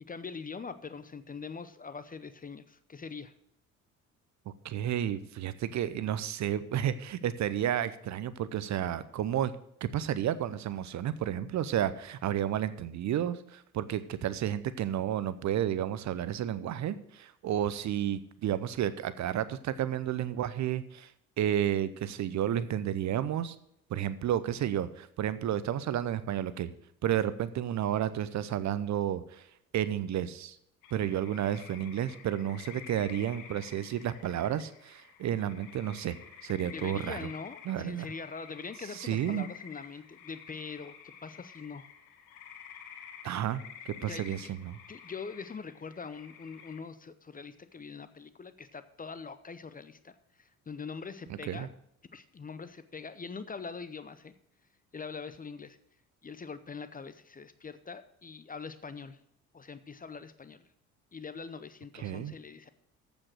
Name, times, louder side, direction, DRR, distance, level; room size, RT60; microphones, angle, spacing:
voice 1, 0.1-3.3 36.7-41.9 44.0-44.5 44.9-51.7 52.1-54.3 54.9-55.8 56.2-59.2 59.5-60.7 61.1-62.7, left 5 dB, 20° left, 12 dB, 0.7 m, -43 dB
voice 2, 4.6-9.5 9.8-21.1 21.4-23.6 23.9-26.7 27.0-29.5 29.7-30.6 30.9-36.2 36.4-37.3 37.7-38.1 38.9-39.5 43.2-44.8 51.5-51.7 61.9-62.3, right 10 dB, 40° right, 15 dB, 0.7 m, -31 dB
sound 1, 30.8-46.8, left 8 dB, 65° left, 1.5 m, -50 dB
14.5 x 5.2 x 6.3 m, 0.73 s
figure-of-eight pair, 50°, 42 cm